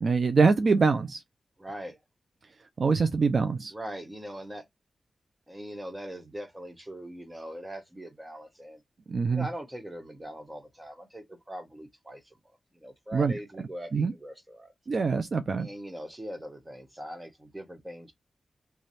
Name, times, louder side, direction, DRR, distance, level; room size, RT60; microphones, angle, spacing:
voice 1, 0.0-1.2 2.8-3.7 9.1-9.5 13.1-13.3 13.9-14.1 14.9-15.7, right 4 dB, 55° right, 0.4 m, -24 dB
voice 2, 1.6-2.0 3.7-4.6 5.5-8.8 9.3-14.7 15.6-18.1, equal, 15° right, 1.3 m, -41 dB
3.2 x 2.3 x 4.1 m
wide cardioid pair, 85°, 0 cm